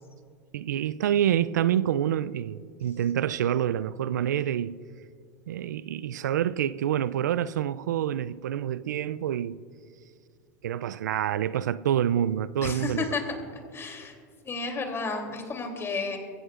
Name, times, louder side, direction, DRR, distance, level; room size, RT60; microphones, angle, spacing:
voice 1, 0.5-4.8 5.5-9.6 10.6-13.1, right 10 dB, 85° right, 0.4 m, -27 dB
voice 2, 12.6-13.2 13.7-14.1 14.4-16.2, left 4 dB, 25° left, 2.9 m, -32 dB
23.0 x 16.0 x 2.5 m
hypercardioid pair, 95°, 9 cm